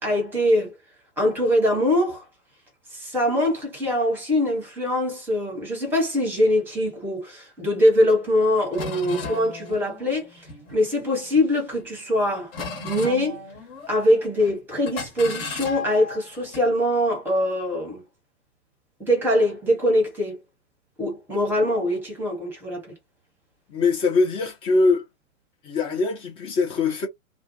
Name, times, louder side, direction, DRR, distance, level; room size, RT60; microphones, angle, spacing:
voice 1, 0.0-0.8 1.2-2.2 2.9-10.5 10.7-12.5 12.8-13.4 13.9-18.0 19.0-20.4 21.0-22.9, left 1 dB, 5° right, 1.1 m, -23 dB
sound 1, 8.3-8.4 8.7-11.2 11.7-12.1 12.5-14.1 14.4-14.6 14.9-16.7, left 3 dB, 45° left, 1.4 m, -35 dB
voice 2, 23.7-25.0 25.6-27.1, left 3 dB, 15° left, 0.7 m, -22 dB
2.4 x 2.3 x 2.6 m
figure-of-eight pair, 115°, 42 cm